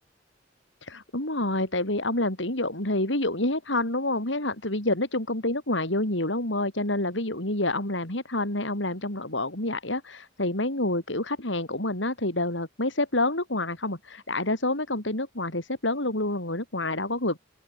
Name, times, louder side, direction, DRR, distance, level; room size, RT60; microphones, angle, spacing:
voice 1, 0.8-17.4, left 2 dB, 75° left, 5.9 m, -28 dB
open air
head